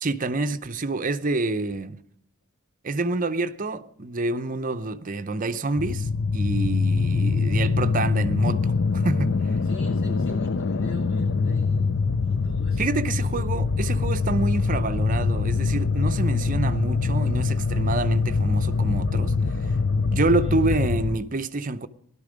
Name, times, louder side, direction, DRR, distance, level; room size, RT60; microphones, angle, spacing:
voice 1, 0.0-2.0 2.8-9.4 12.8-19.3 20.0-21.9, right 3 dB, 40° right, 0.7 m, -27 dB
sound 1, 5.8-21.2, left 4 dB, 60° left, 0.6 m, -24 dB
voice 2, 9.6-11.9 12.2-13.5 20.4-20.6, left 3 dB, 85° left, 6.2 m, -40 dB
17.0 x 12.0 x 5.1 m
head